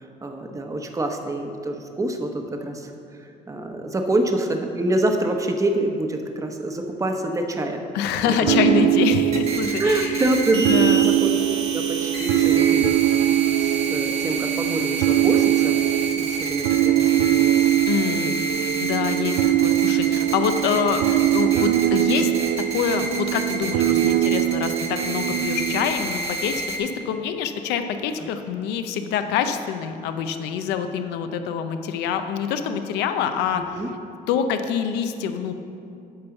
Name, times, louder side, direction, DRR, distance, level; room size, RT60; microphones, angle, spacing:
voice 1, 0.2-2.9 3.2-8.7 9.8-11.4 11.7-13.0 13.6-15.8 16.2-17.7 18.3-18.4 28.2-28.3 33.5-33.9, right 1 dB, 20° right, 4 dB, 0.9 m, -26 dB
voice 2, 7.9-10.2 10.5-11.1 17.9-18.5 18.8-22.3 22.7-33.6 34.3-35.5, left 7 dB, 90° left, 8 dB, 0.7 m, -25 dB
sound 1, 8.5-25.9, right 14 dB, 90° right, 0.4 m, -22 dB
sound 2, 9.3-26.8, right 3 dB, 35° right, 1.3 m, -30 dB
8.7 x 5.5 x 7.0 m, 2.6 s
cardioid pair, 110°, 17 cm